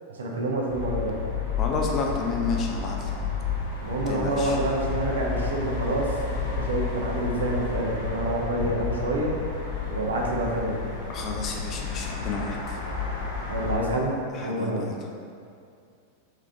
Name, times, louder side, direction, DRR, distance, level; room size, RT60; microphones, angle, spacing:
voice 1, 0.1-1.1 3.8-6.1 6.5-9.3 9.9-10.9 13.5-14.1 14.4-14.8, right 2 dB, 65° right, -2 dB, 0.6 m, -27 dB
sound 1, 0.7-13.8, left 5 dB, 55° left, 1.3 m, -31 dB
voice 2, 1.6-3.1 4.1-4.6 11.1-12.8 14.3-15.0, left 3 dB, 30° left, 1 dB, 0.5 m, -31 dB
3.7 x 3.5 x 3.3 m, 2.3 s
figure-of-eight pair, 90°, 0 cm